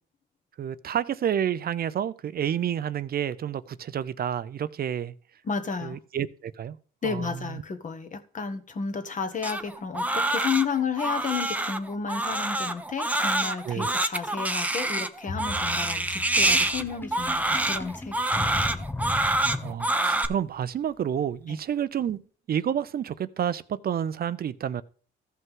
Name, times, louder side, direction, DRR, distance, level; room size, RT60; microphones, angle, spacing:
voice 1, 0.6-5.1 5.8-6.8 7.0-7.6 13.6-13.9 19.6-22.2 22.5-24.8, right 9 dB, 50° right, 0.5 m, -29 dB
voice 2, 5.4-6.0 7.0-18.9 21.5-21.6, left 5 dB, 40° left, 1.4 m, -32 dB
Crying sobbing, 9.4-20.3, right 1 dB, 5° right, 0.7 m, -26 dB
Sink (filling or washing), 16.4-20.2, left 2 dB, 10° left, 0.4 m, -36 dB
14.0 x 5.5 x 3.7 m
cardioid pair, 90°, 20 cm